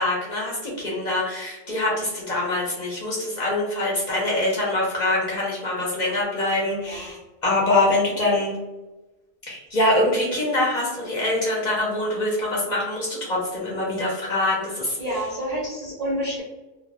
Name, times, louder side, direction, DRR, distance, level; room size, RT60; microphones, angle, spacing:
voice 1, 0.0-8.6 9.5-15.0, left 2 dB, 50° left, -4 dB, 0.6 m, -24 dB
voice 2, 6.8-7.2 15.0-16.4, equal, 55° right, -5 dB, 0.4 m, -29 dB
2.1 x 2.0 x 2.8 m, 1.1 s
omnidirectional pair, 1.2 m